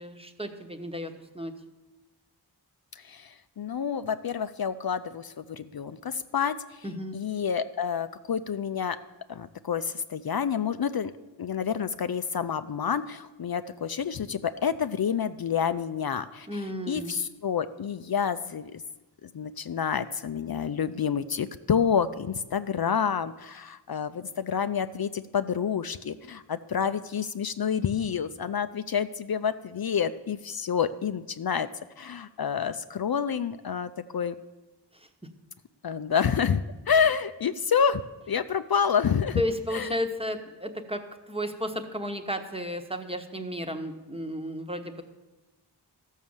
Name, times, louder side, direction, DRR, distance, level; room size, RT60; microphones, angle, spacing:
voice 1, 0.0-1.5 6.8-7.2 16.5-17.2 34.9-35.1 39.4-45.0, equal, 15° right, 6 dB, 1.1 m, -33 dB
voice 2, 3.0-6.8 7.1-9.0 9.3-11.1 11.4-16.6 16.9-18.8 19.2-31.7 32.0-34.3 35.8-38.0 38.3-39.4 39.7-39.9, left 7 dB, 60° left, 11 dB, 0.5 m, -28 dB
14.0 x 6.4 x 7.2 m, 1.1 s
wide cardioid pair, 70°, 42 cm